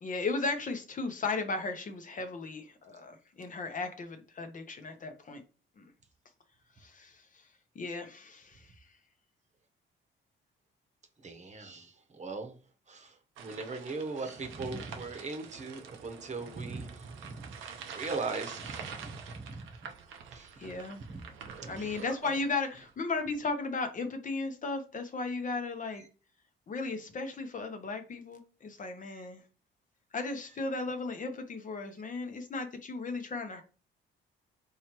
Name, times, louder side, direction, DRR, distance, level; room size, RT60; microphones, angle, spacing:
voice 1, 0.0-5.4 5.8-5.9 6.8-7.2 7.7-8.7 20.6-21.0 21.6-26.0 26.7-29.4 30.1-33.6, left 3 dB, 40° left, 0.8 m, -36 dB
voice 2, 11.2-12.5 12.9-19.7 20.3-20.7 21.1-22.0 29.1-29.3, right 3 dB, 35° right, 1.0 m, -40 dB
sound 1, 13.4-22.9, right 6 dB, 85° right, 0.7 m, -46 dB
4.6 x 3.2 x 2.9 m
cardioid pair, 90°, 20 cm